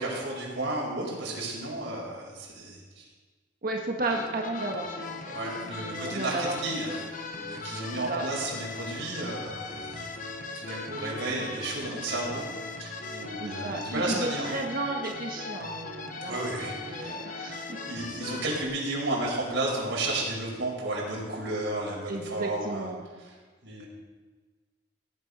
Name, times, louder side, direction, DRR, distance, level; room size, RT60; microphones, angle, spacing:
voice 1, 0.0-3.0 5.3-7.0 7.4-10.2 10.5-12.4 12.8-14.5 16.2-17.2 17.8-22.9 23.6-23.9, right 2 dB, 80° right, -4 dB, 5.6 m, -33 dB
voice 2, 3.6-6.5 6.9-7.0 7.9-8.2 13.4-16.5 16.9-17.8 22.1-23.0, right 2 dB, 50° right, 1 dB, 1.6 m, -34 dB
sound 1, 4.1-18.6, left 3 dB, 45° left, 1.4 m, -39 dB
18.0 x 9.6 x 5.6 m, 1.4 s
head